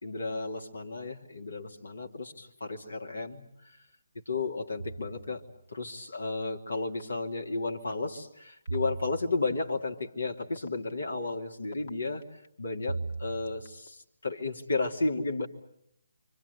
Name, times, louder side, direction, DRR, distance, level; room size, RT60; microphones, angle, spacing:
voice 1, 0.0-3.8 4.3-5.4 5.7-15.5, left 3 dB, 75° left, 2 dB, 2.7 m, -33 dB
sound 1, 4.8-5.6 8.7-9.7 12.9-13.8, right 3 dB, 60° right, 1.1 m, -38 dB
sound 2, 6.1-6.2 7.0-7.1 7.7-7.9 8.7-8.9 9.7-9.8 10.4-12.5 13.1-13.9, left 4 dB, 50° left, 2.7 m, -51 dB
29.0 x 25.0 x 8.2 m, 0.75 s
figure-of-eight pair, 145°, 0 cm